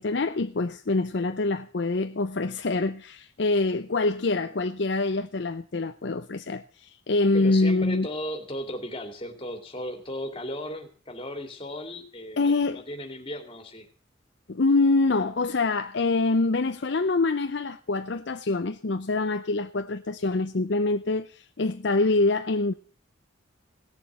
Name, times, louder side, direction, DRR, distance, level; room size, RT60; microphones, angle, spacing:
voice 1, 0.0-8.1 12.4-12.8 14.5-22.7, left 3 dB, 55° left, 0.6 m, -25 dB
voice 2, 7.3-13.8, equal, 25° left, 2.5 m, -36 dB
17.5 x 7.1 x 7.4 m
head